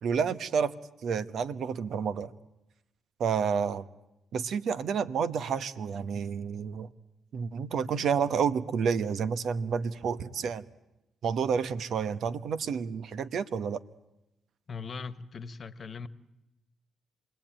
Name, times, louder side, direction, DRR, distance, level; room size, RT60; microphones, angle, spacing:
voice 1, 0.0-0.7 1.0-2.3 3.2-3.9 4.3-6.9 7.3-10.6 11.2-13.8, right 6 dB, 65° right, 1.1 m, -30 dB
voice 2, 14.7-16.1, left 5 dB, 45° left, 1.3 m, -39 dB
28.0 x 20.0 x 9.0 m
supercardioid pair, 65°, 0 cm